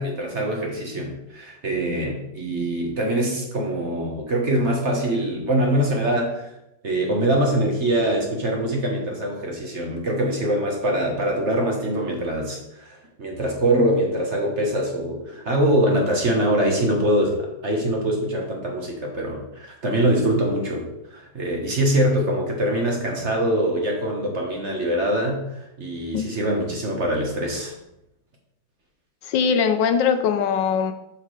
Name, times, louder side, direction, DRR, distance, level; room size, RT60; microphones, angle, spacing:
voice 1, 0.0-6.5 6.8-20.8 21.1-27.8, right 1 dB, 40° right, 0 dB, 1.3 m, -23 dB
voice 2, 29.2-30.9, left 6 dB, 80° left, 9 dB, 1.3 m, -21 dB
8.0 x 5.8 x 3.2 m, 0.86 s
omnidirectional pair, 2.0 m